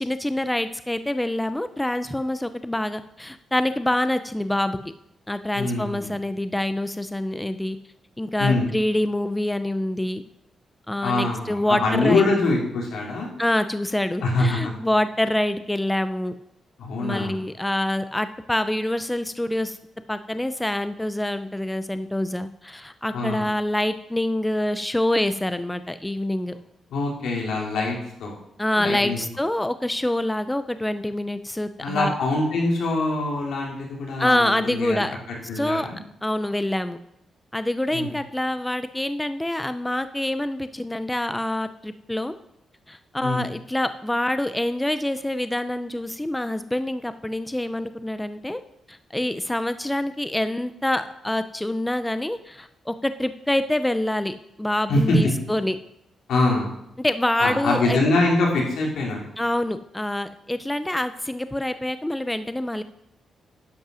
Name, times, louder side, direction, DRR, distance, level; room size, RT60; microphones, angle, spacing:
voice 1, 0.0-4.8 5.3-7.8 8.2-10.2 10.9-12.3 13.4-16.3 17.0-19.8 20.1-26.6 28.6-32.1 34.2-35.2 35.5-35.9 36.2-37.0 37.5-42.4 42.9-48.6 48.9-55.8 57.0-58.0 59.4-62.8, left 1 dB, 5° left, 11 dB, 0.4 m, -26 dB
voice 2, 5.5-6.1 8.4-8.7 11.0-13.3 14.2-14.7 16.8-17.4 23.1-23.4 26.9-28.4 28.8-29.2 31.8-35.0 35.5-36.0 37.9-38.1 43.2-43.5 54.9-55.3 56.3-56.7 57.4-59.2, left 2 dB, 90° left, -2 dB, 2.9 m, -24 dB
10.5 x 5.5 x 6.1 m, 0.79 s
wide cardioid pair, 145°, 0 cm